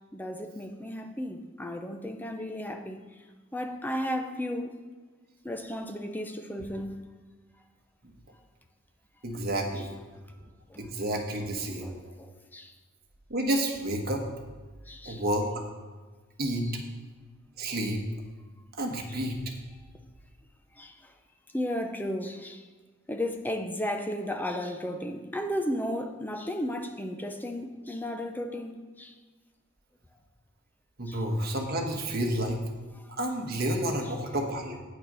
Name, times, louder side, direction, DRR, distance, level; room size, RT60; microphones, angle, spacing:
voice 1, 0.1-3.0 3.5-4.7 5.4-7.0 10.7-10.9 11.6-12.7 14.9-15.2 16.6-16.7 20.8-21.1 21.5-22.6 23.1-29.1 31.1-31.2 32.9-33.1, left 1 dB, 10° left, 0.6 m, -34 dB
voice 2, 9.2-9.9 10.8-12.1 13.3-14.2 15.0-15.5 16.4-16.7 17.6-18.0 18.8-19.4 31.0-32.6 33.1-34.8, right 1 dB, 50° right, 1.4 m, -30 dB
8.9 x 6.7 x 5.4 m
head